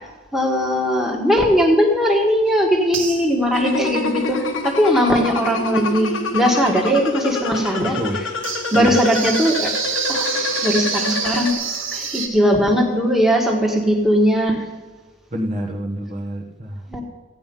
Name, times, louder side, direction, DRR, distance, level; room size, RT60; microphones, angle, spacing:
voice 1, 0.3-8.0 8.7-9.7 10.1-10.3 10.6-11.6 11.9-14.6 16.9-17.0, equal, ahead, 0 dB, 1.6 m, -19 dB
sound 1, 2.5-2.6 2.9-3.6 8.4-12.3, right 5 dB, 75° right, 1.9 m, -26 dB
sound 2, 3.5-11.5, left 3 dB, 80° left, 1.2 m, -27 dB
voice 2, 7.9-8.2 8.7-9.0 15.3-16.8, equal, 35° right, -1 dB, 1.2 m, -27 dB
14.5 x 9.2 x 5.4 m, 1.3 s
head